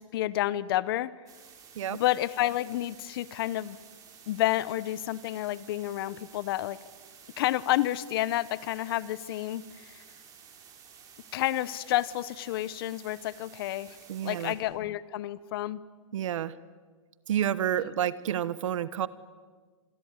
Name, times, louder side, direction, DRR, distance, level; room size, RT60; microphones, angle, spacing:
voice 1, 0.1-1.1 1.9-3.8 4.3-6.8 7.4-10.0 11.3-14.0 14.2-15.8, left 14 dB, 45° left, 19 dB, 0.8 m, -30 dB
sound 1, 1.3-14.5, right 7 dB, 20° right, 4.3 m, -53 dB
voice 2, 14.1-14.6 16.1-16.5 17.3-19.1, right 10 dB, 75° right, 17 dB, 1.2 m, -29 dB
26.5 x 21.0 x 9.6 m, 1.5 s
hypercardioid pair, 160°, 16 cm